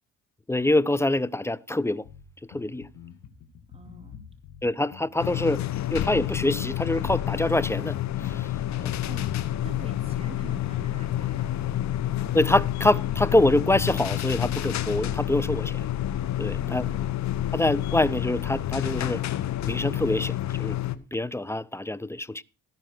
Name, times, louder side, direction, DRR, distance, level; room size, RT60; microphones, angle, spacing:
voice 1, 0.5-2.1 2.4-2.9 4.6-5.6 5.9-8.5 8.8-9.0 12.3-15.9 16.4-16.9 17.5-19.2 19.6-22.4, left 1 dB, 10° left, 0.5 m, -25 dB
Bass guitar, 2.0-11.6, left 8 dB, 90° left, 2.4 m, -47 dB
voice 2, 3.7-4.3 9.1-9.4 9.6-11.6 16.4-17.0, right 3 dB, 20° right, 2.7 m, -46 dB
sound 1, 5.2-20.9, left 12 dB, 65° left, 1.0 m, -29 dB
16.5 x 5.5 x 6.4 m
cardioid pair, 90°, 30 cm